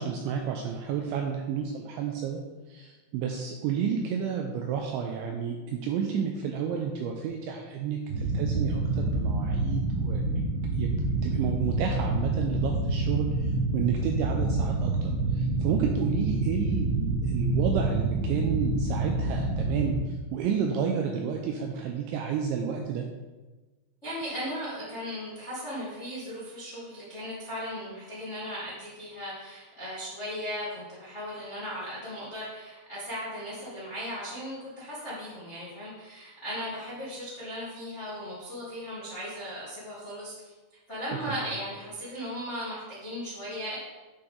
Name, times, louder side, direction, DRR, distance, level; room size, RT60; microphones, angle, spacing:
voice 1, 0.0-2.4 2.7-10.4 10.8-10.9 11.2-20.0 20.3-23.1 41.3-41.4, right 7 dB, 85° right, 2 dB, 2.6 m, -31 dB
sound 1, 8.1-19.9, right 2 dB, 65° right, 3.3 m, -27 dB
voice 2, 24.0-40.5 40.9-43.8, equal, 45° left, -10 dB, 0.9 m, -37 dB
8.7 x 5.8 x 3.8 m, 1.2 s
omnidirectional pair, 5.8 m